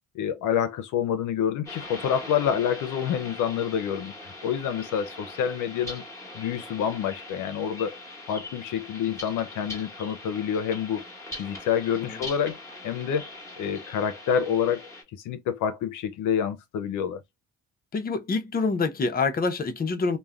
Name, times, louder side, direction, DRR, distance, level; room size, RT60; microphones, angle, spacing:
voice 1, 0.1-6.0 6.3-8.0 8.3-11.0 11.3-12.6 12.8-13.3 13.6-17.2, left 8 dB, 80° left, 0.6 m, -27 dB
sound 1, 1.7-15.0, left 2 dB, 10° left, 1.3 m, -41 dB
voice 2, 17.9-20.2, left 4 dB, 30° left, 0.7 m, -26 dB
3.1 x 2.1 x 2.3 m
cardioid pair, 90°, 30 cm